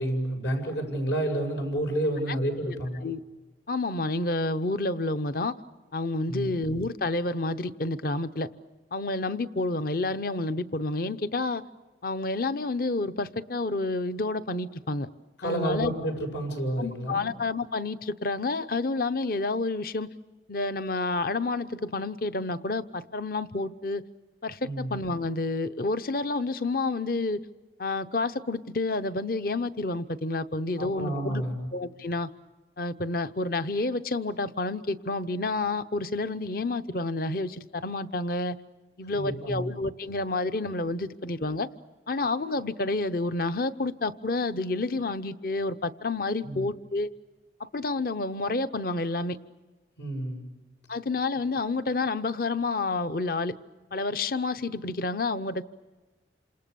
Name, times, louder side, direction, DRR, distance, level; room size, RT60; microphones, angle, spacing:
voice 1, 0.0-3.0 6.3-6.5 15.4-17.3 24.6-25.0 30.8-31.7 39.1-39.8 46.4-46.6 50.0-50.5, right 1 dB, 85° left, 3 dB, 7.4 m, -30 dB
voice 2, 3.7-5.5 5.9-8.5 8.9-11.6 12.0-15.1 15.4-15.9 16.8-20.1 20.5-24.0 24.4-27.4 27.8-31.4 31.7-32.3 32.8-38.6 39.0-41.7 42.1-47.1 47.6-49.4 50.9-53.6 53.9-55.6, left 2 dB, 50° left, 12 dB, 0.8 m, -29 dB
28.0 x 27.0 x 7.0 m, 1.2 s
head